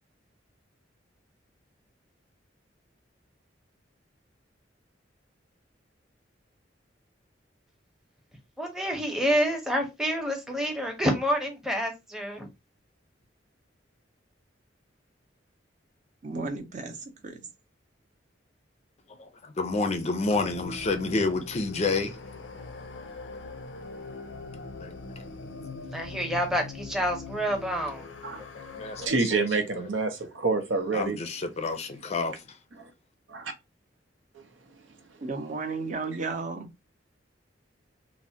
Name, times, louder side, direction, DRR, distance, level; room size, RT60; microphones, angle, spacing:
voice 1, 8.6-12.5 25.9-28.1, equal, 5° right, 0.7 m, -28 dB
voice 2, 16.2-17.5 35.2-36.7, right 3 dB, 45° right, 0.6 m, -34 dB
voice 3, 19.2-22.2 24.8-24.9 28.8-29.1 29.3-29.5 30.9-32.3, left 3 dB, 35° left, 0.4 m, -29 dB
sound 1, 20.3-29.1, left 3 dB, 85° left, 0.5 m, -42 dB
voice 4, 29.0-31.2 32.7-32.9 33.3-33.5 34.3-34.4, right 3 dB, 90° right, 0.7 m, -28 dB
3.2 x 2.1 x 2.6 m
head